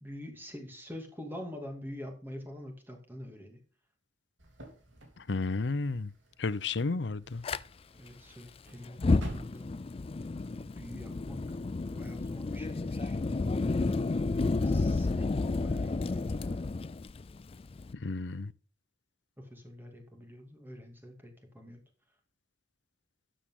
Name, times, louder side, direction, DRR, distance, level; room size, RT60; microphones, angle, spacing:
voice 1, 0.0-3.6 8.0-9.7 10.4-11.6 11.9-13.2 14.6-16.7 19.4-21.8, left 1 dB, 10° right, 2.4 m, -46 dB
sound 1, 4.4-10.3, right 1 dB, 90° right, 3.4 m, -48 dB
voice 2, 5.2-6.1 6.4-7.4 17.9-18.5, left 3 dB, 70° left, 0.7 m, -32 dB
Fire, 7.4-7.6 8.9-17.9, left 3 dB, 30° left, 0.4 m, -31 dB
12.5 x 8.2 x 3.7 m
head